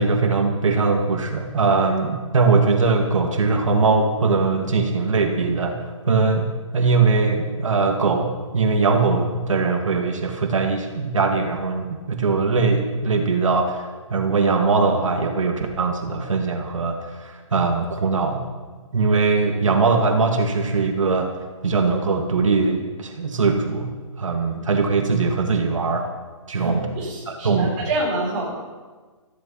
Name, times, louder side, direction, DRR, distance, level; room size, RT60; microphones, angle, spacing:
voice 1, 0.0-18.4 18.9-21.3 21.6-26.1 26.5-26.9 27.3-27.8, right 4 dB, 70° right, 3 dB, 2.2 m, -21 dB
voice 2, 26.5-28.5, right 2 dB, 15° right, -4 dB, 4.4 m, -27 dB
15.5 x 14.5 x 5.7 m, 1.4 s
hypercardioid pair, 180°, 17 cm